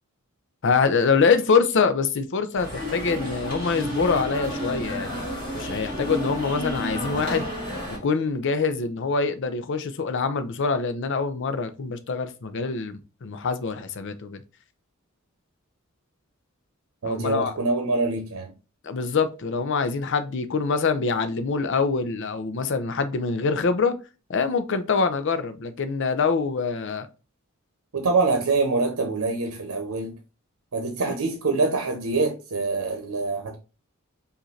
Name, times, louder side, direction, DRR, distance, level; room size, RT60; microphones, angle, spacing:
voice 1, 0.6-5.3 5.6-7.5 8.0-14.4 17.0-17.5 18.8-23.9 24.3-27.1, left 5 dB, 60° left, 0.6 m, -24 dB
sound 1, 2.6-8.0, equal, 25° left, 2.0 m, -31 dB
voice 2, 17.0-18.5 27.9-30.2 30.7-33.6, right 3 dB, 85° right, 0.8 m, -25 dB
4.9 x 2.6 x 3.2 m
head